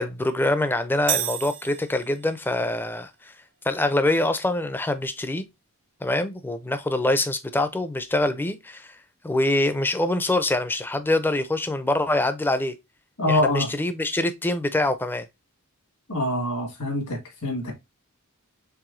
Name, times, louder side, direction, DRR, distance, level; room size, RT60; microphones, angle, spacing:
voice 1, 0.0-3.3 3.6-5.4 6.0-9.0 9.2-12.8 13.3-15.3, left 1 dB, 10° left, 0.4 m, -24 dB
sound 1, 1.1-2.5, right 12 dB, 55° right, 0.6 m, -30 dB
voice 2, 13.2-13.7 16.1-17.7, left 1 dB, 75° left, 1.8 m, -25 dB
4.7 x 3.3 x 2.5 m
head